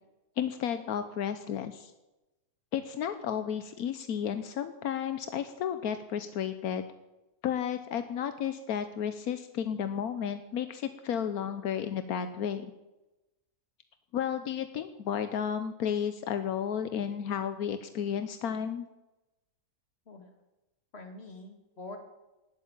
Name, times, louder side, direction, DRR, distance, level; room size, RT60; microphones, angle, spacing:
voice 1, 0.4-1.9 2.7-6.8 7.4-12.7 14.1-18.9, left 8 dB, 85° left, 10 dB, 1.3 m, -32 dB
voice 2, 20.9-22.0, left 2 dB, 45° left, 3 dB, 2.6 m, -45 dB
19.0 x 8.4 x 7.4 m, 1.0 s
omnidirectional pair, 1.5 m